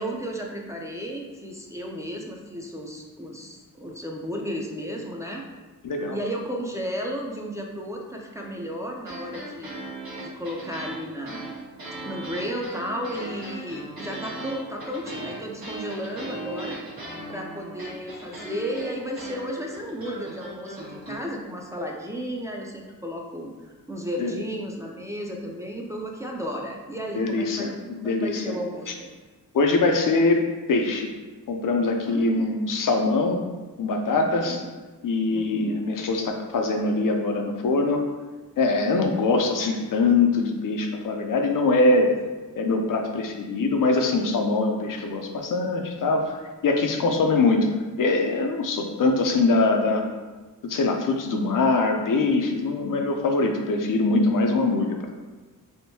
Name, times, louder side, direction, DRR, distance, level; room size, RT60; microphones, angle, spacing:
voice 1, 0.0-5.4 6.1-9.8 10.2-11.5 12.0-16.8 17.3-27.7 28.0-29.1 32.0-32.5 34.1-34.7 35.3-35.8 42.1-42.2, equal, 10° right, -1 dB, 0.4 m, -33 dB
voice 2, 5.8-6.2 24.2-24.4 27.2-27.7 28.0-28.5 29.5-31.1 31.5-33.4 33.8-34.6 35.0-38.0 38.6-42.1 42.6-47.7 48.0-50.0 50.6-55.1, left 3 dB, 65° left, 3 dB, 0.5 m, -23 dB
sound 1, 9.1-21.2, right 2 dB, 80° right, 1.1 m, -38 dB
3.5 x 2.6 x 2.7 m, 1.3 s
cardioid pair, 70°, 35 cm